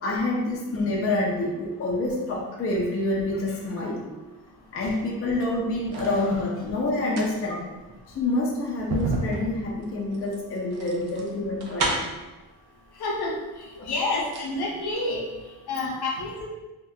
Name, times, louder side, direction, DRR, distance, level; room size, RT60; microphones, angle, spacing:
voice 1, 0.0-4.0 4.7-7.6 8.1-12.0 13.8-13.9, left 2 dB, 35° left, -2 dB, 0.5 m, -27 dB
sound 1, 5.2-6.2 6.9-12.3 13.3-13.4 13.7-14.5 14.8-14.9, right 2 dB, 70° right, 0.6 m, -32 dB
voice 2, 13.0-13.4 13.9-15.2 15.7-16.5, left 2 dB, 70° left, -1 dB, 0.7 m, -28 dB
2.7 x 2.2 x 3.4 m, 1.1 s
wide cardioid pair, 145°, 40 cm